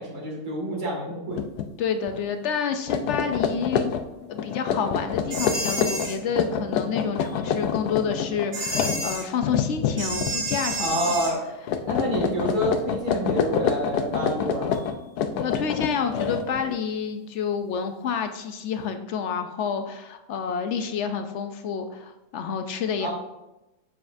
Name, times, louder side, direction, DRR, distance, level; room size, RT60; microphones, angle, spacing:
voice 1, 0.0-1.4 10.8-11.4 11.9-14.8 23.0-23.1, right 1 dB, 75° right, -2 dB, 2.5 m, -28 dB
sound 1, 1.3-1.7 2.0-2.2 2.7-10.8 11.1-11.4 11.7-16.8, left 7 dB, 80° left, 1.1 m, -27 dB
voice 2, 1.8-3.9 4.3-11.2 15.4-23.1, left 6 dB, 65° left, 7 dB, 0.7 m, -29 dB
sound 2, 5.3-6.2 8.5-9.3 10.0-11.4, right 2 dB, 40° right, 1.1 m, -30 dB
7.3 x 7.1 x 2.6 m, 0.97 s
omnidirectional pair, 1.7 m